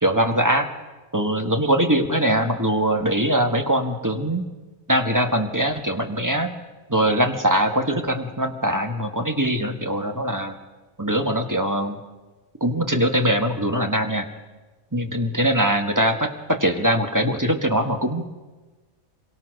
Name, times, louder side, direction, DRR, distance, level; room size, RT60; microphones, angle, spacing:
voice 1, 0.0-0.7 1.1-4.5 4.9-6.5 6.9-10.5 11.0-12.0 12.6-14.3 14.9-18.3, right 1 dB, 15° right, 5 dB, 1.7 m, -22 dB
26.5 x 23.0 x 6.6 m, 1.2 s
omnidirectional pair, 1.5 m